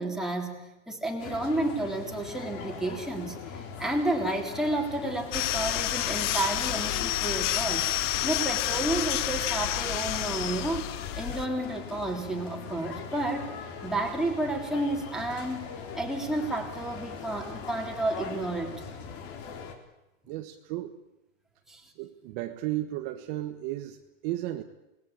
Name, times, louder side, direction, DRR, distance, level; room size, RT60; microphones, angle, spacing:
voice 1, 0.0-7.9 8.2-10.9 11.2-13.5 13.8-18.8 21.7-21.8, right 2 dB, ahead, 0 dB, 3.5 m, -31 dB
sound 1, 1.2-19.7, left 6 dB, 35° left, 3.7 m, -41 dB
sound 2, 5.3-11.5, left 14 dB, 60° left, 0.8 m, -29 dB
voice 2, 20.3-20.9 22.0-24.6, right 15 dB, 35° right, 5 dB, 1.4 m, -34 dB
28.0 x 20.5 x 8.7 m, 0.96 s
supercardioid pair, 155°, 41 cm